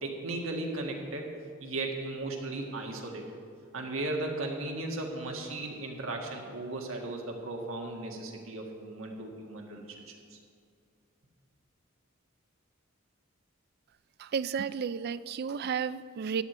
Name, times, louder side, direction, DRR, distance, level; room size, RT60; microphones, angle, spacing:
voice 1, 0.0-1.3 1.6-3.2 3.7-10.0 10.3-10.4, right 2 dB, 85° right, 1.8 m, -36 dB
voice 2, 14.2-16.4, right 6 dB, 50° right, 0.3 m, -32 dB
13.5 x 9.6 x 4.4 m
head